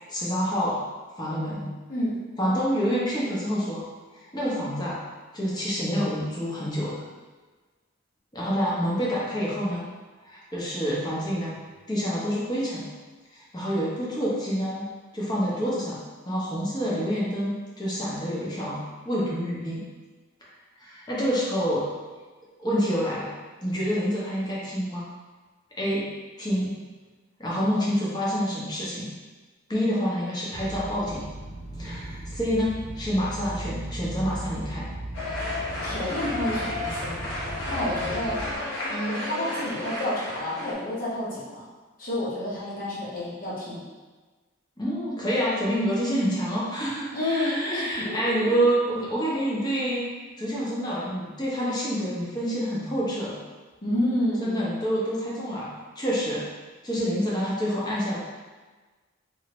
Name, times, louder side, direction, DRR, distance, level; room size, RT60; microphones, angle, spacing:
voice 1, 0.1-0.8 1.2-1.7 2.4-3.8 4.1-5.0 5.3-7.0 8.3-9.9 10.2-11.5 11.9-12.9 13.3-18.8 19.0-19.8 20.8-21.9 22.6-23.3 23.6-25.1 25.8-26.1 26.4-26.8 27.4-29.1 29.7-31.2 31.8-34.9 44.8-50.1 50.4-53.4 54.4-55.7 56.0-56.4 56.8-58.2, equal, 20° left, -6 dB, 0.8 m, -27 dB
sound 1, 30.5-38.6, right 1 dB, 30° right, 0.3 m, -37 dB
sound 2, 35.1-40.7, left 2 dB, 70° left, 1.0 m, -32 dB
voice 2, 35.8-37.2 37.7-38.5 38.9-41.7 42.0-43.8 47.1-48.3 53.8-54.5, left 1 dB, 45° left, -7 dB, 1.0 m, -29 dB
3.0 x 2.7 x 2.9 m, 1.3 s
head